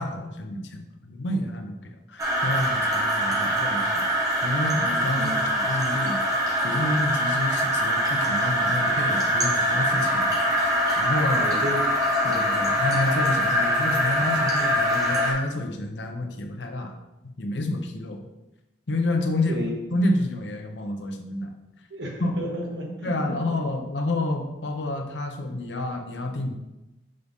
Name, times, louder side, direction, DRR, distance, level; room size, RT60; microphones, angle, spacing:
voice 1, 0.0-4.0 4.4-6.2 6.6-10.4 11.0-11.5 12.2-16.9 17.4-18.2 18.9-19.7 19.9-21.5 22.2-22.3 23.0-26.5, left 1 dB, 90° left, 4 dB, 0.8 m, -29 dB
sound 1, 2.2-15.3, equal, 20° right, 1.3 m, -23 dB
voice 2, 5.1-5.5 11.3-11.8 19.5-19.7 21.9-23.4, equal, 90° right, 0 dB, 1.4 m, -32 dB
6.5 x 4.0 x 3.6 m, 0.97 s
head